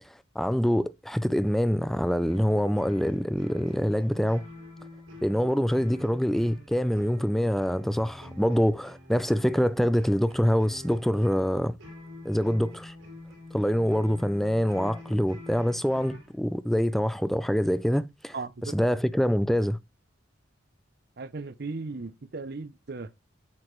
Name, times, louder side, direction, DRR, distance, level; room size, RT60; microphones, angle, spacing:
voice 1, 0.4-4.4 5.2-11.8 12.2-12.9 13.5-19.8, equal, ahead, 0.4 m, -25 dB
sound 1, 2.2-16.3, left 1 dB, 80° right, 3.8 m, -46 dB
voice 2, 18.3-18.7 21.2-23.1, right 3 dB, 50° right, 0.6 m, -36 dB
8.7 x 6.4 x 3.1 m
head